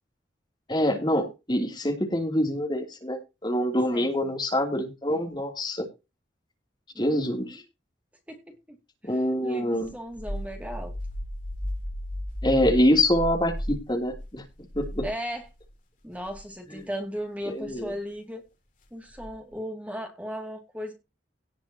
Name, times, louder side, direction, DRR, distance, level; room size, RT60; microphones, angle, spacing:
voice 1, 0.7-5.9 7.0-7.6 9.0-9.9 12.4-14.4 14.7-15.0 17.5-17.9, left 1 dB, 25° left, 2 dB, 3.0 m, -25 dB
voice 2, 3.9-4.3 6.9-7.6 8.3-8.8 9.1-10.9 15.0-15.5 16.0-18.5 18.9-20.9, equal, 10° right, 3 dB, 2.4 m, -37 dB
sound 1, 9.8-15.7 16.1-16.5 17.6-17.9 19.1-19.5, equal, 45° left, 3.5 m, -35 dB
18.0 x 7.6 x 2.9 m, 0.26 s
head